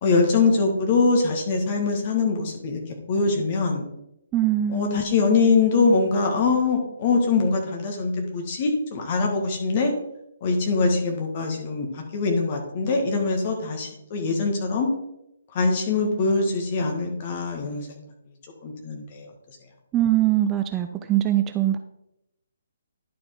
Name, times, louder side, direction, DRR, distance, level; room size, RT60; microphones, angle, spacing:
voice 1, 0.0-2.8 3.1-3.8 4.7-9.9 10.4-14.9 15.5-18.0 18.6-19.3, left 4 dB, 40° left, 2 dB, 1.8 m, -23 dB
voice 2, 4.3-5.1 19.9-21.8, right 12 dB, 15° right, 7 dB, 0.4 m, -22 dB
11.0 x 4.7 x 3.8 m, 0.82 s
figure-of-eight pair, 135°, 0 cm